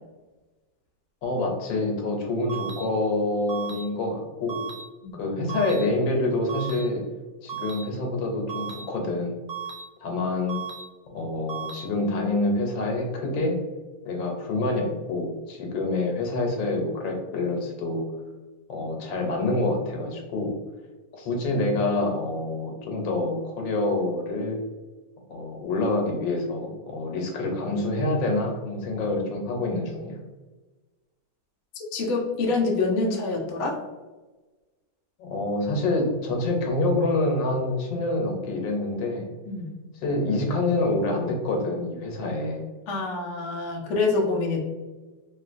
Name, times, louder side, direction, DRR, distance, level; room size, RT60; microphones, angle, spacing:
voice 1, 1.2-4.6 5.1-7.0 7.4-9.4 10.0-10.6 11.1-13.6 14.0-18.0 18.7-20.5 21.1-24.6 25.3-30.2 35.2-39.3 40.0-42.6, left 2 dB, 85° left, 1 dB, 1.4 m, -27 dB
sound 1, 2.5-2.8 3.5-3.8 4.5-4.8 5.5-5.8 6.5-6.8 7.5-7.8 8.5-8.8 9.5-9.8 10.5-10.8 11.5-11.8, right 8 dB, 90° right, 1.3 m, -35 dB
voice 2, 31.9-33.8 39.5-39.7 42.9-44.6, left 3 dB, 65° left, -1 dB, 0.7 m, -26 dB
3.0 x 2.8 x 2.4 m, 1.2 s
omnidirectional pair, 2.0 m